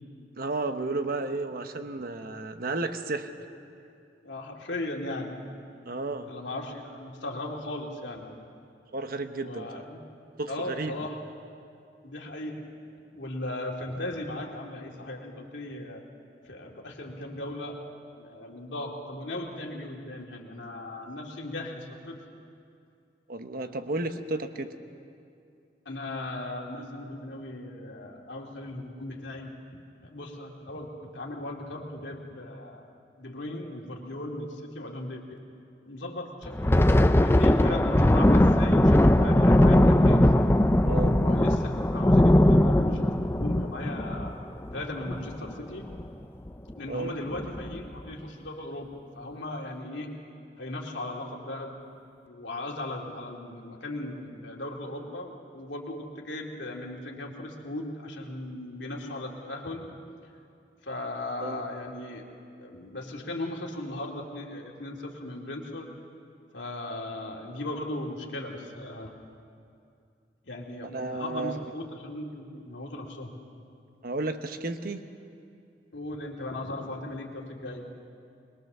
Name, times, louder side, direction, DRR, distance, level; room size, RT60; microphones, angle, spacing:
voice 1, 0.4-3.3 5.9-6.3 8.9-9.7 10.4-10.9 23.3-24.7 40.8-41.2 46.9-47.2 61.4-61.6 70.9-71.6 74.0-75.0, right 2 dB, 55° right, 8 dB, 1.1 m, -32 dB
voice 2, 4.2-5.4 6.3-8.4 9.3-10.0 10.5-11.2 12.0-12.6 13.1-16.0 16.4-17.8 18.2-22.2 25.9-32.8 33.2-35.4 35.9-40.3 41.1-44.4 44.7-45.8 46.7-50.2 50.6-51.8 52.3-59.8 60.8-62.2 62.6-65.9 66.5-69.1 70.4-73.4 75.9-77.9, left 1 dB, 90° left, 0 dB, 2.5 m, -37 dB
Thunder, 36.4-45.5 45.9-46.1 46.5-46.7 47.3-47.8, left 1 dB, 15° left, 0.6 m, -20 dB
21.5 x 21.5 x 6.8 m, 2.5 s
head